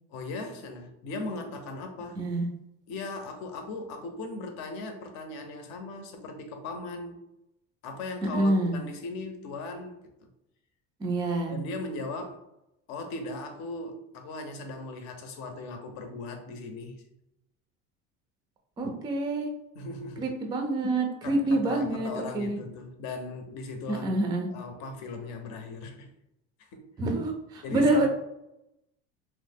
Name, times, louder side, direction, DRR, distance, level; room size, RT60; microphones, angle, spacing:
voice 1, 0.1-2.2 2.9-7.3 7.8-10.3 11.5-12.5 12.9-17.0 19.7-20.3 21.2-24.1 24.5-26.1 26.6-27.0 27.6-28.1, left 2 dB, 65° left, 0.7 m, -38 dB
voice 2, 2.2-2.5 8.3-8.8 11.0-11.5 18.8-19.5 20.2-22.6 23.9-24.5 27.0-28.1, right 2 dB, 15° right, 0.3 m, -27 dB
3.1 x 2.1 x 3.4 m
cardioid pair, 155°, 29 cm